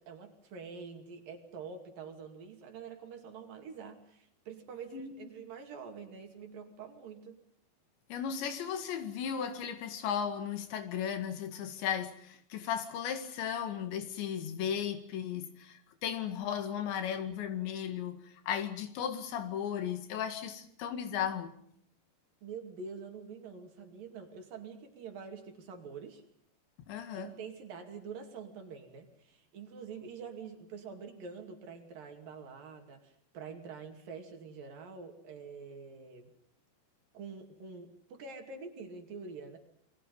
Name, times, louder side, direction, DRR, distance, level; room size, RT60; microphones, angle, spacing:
voice 1, 0.0-7.4 22.4-26.2 27.1-36.3 37.1-39.6, right 5 dB, 55° right, 4.0 m, -46 dB
voice 2, 4.9-5.3 8.1-21.6 26.9-27.3, left 8 dB, 80° left, 4.4 m, -36 dB
29.0 x 23.0 x 5.5 m
omnidirectional pair, 5.0 m